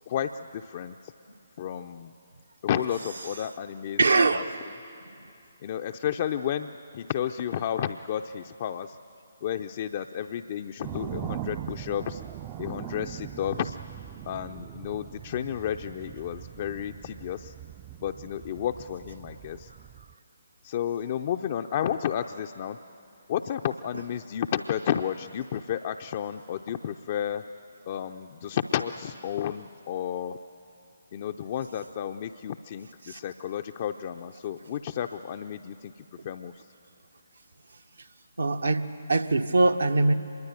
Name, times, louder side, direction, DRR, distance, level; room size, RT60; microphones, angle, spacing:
voice 1, 0.1-1.1 1.6-2.1 2.6-4.4 5.6-9.0 9.4-12.2 12.6-13.8 14.2-17.5 18.0-19.7 20.6-22.8 23.3-27.4 27.9-30.4 31.1-35.9 36.2-36.5, left 9 dB, 35° left, 6 dB, 0.6 m, -32 dB
voice 2, 4.0-4.5 33.0-33.2 38.4-40.1, right 3 dB, 75° right, 6 dB, 1.4 m, -23 dB
sound 1, 10.8-20.1, right 11 dB, 20° right, 0.5 m, -40 dB
25.0 x 21.5 x 9.2 m, 2.6 s
figure-of-eight pair, 140°, 0 cm